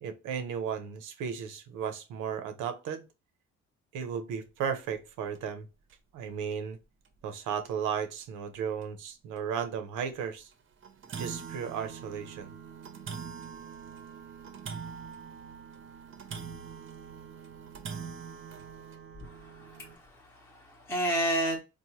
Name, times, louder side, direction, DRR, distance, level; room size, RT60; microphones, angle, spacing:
voice 1, 0.0-3.1 3.9-5.7 6.1-6.8 7.2-10.5 11.2-12.5, right 7 dB, 90° right, 0.6 m, -35 dB
sound 1, 4.7-4.9 5.3-5.4 5.9-6.0 7.0-7.1 7.7-7.8 8.2-8.3 8.8-8.9 10.0-10.1 10.5-10.6 10.8-20.0, right 6 dB, 45° right, 0.6 m, -43 dB
voice 2, 19.2-21.6, right 1 dB, 10° left, 0.7 m, -32 dB
3.1 x 2.1 x 2.8 m
cardioid pair, 90°, 30 cm